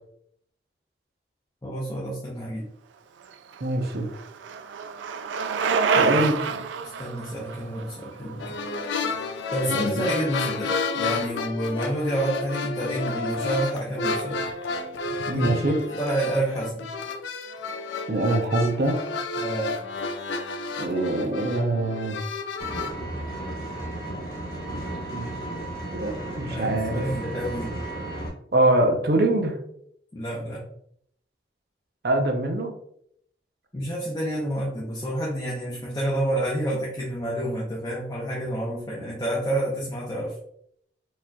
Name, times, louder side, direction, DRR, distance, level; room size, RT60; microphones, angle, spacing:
voice 1, 1.6-2.7 5.9-6.2 6.5-8.6 9.5-14.5 15.3-16.9 19.4-19.8 26.5-27.8 30.1-30.6 33.7-40.4, right 1 dB, 20° left, -5 dB, 0.7 m, -29 dB
Bicycle, 3.3-9.3, right 5 dB, 85° right, 0.3 m, -28 dB
voice 2, 3.6-4.1 5.9-6.4 9.7-9.9 15.3-15.8 18.1-19.0 20.8-22.2 24.6-24.8 25.1-25.4 25.9-27.0 28.5-29.6 32.0-32.7, right 1 dB, 55° right, 3 dB, 0.7 m, -24 dB
sound 1, 8.4-22.9, left 4 dB, 85° left, 0.4 m, -31 dB
Vehicle, 22.6-28.3, right 1 dB, 50° left, 1.1 m, -34 dB
4.7 x 2.8 x 2.3 m, 0.70 s
head